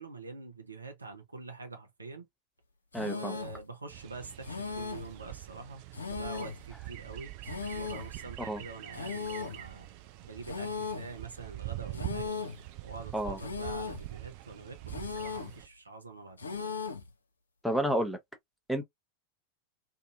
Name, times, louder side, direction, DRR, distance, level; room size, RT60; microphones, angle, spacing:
voice 1, 0.0-2.3 3.0-5.8 6.1-7.3 7.7-9.9 10.2-12.4 12.8-16.8, right 3 dB, 80° right, 0.7 m, -45 dB
sound 1, 2.9-3.6 4.4-5.2 5.9-6.7 7.4-8.1 8.9-9.6 10.4-11.1 11.9-12.6 13.4-14.1 14.9-15.6 16.4-17.1, left 5 dB, 75° left, 0.5 m, -37 dB
voice 2, 2.9-3.4 8.5-8.6 13.1-13.4 17.6-18.2 18.7-18.8, right 1 dB, ahead, 0.7 m, -30 dB
sound 2, 3.9-15.7, right 18 dB, 45° right, 0.4 m, -44 dB
2.6 x 2.5 x 2.4 m
figure-of-eight pair, 90°, 0 cm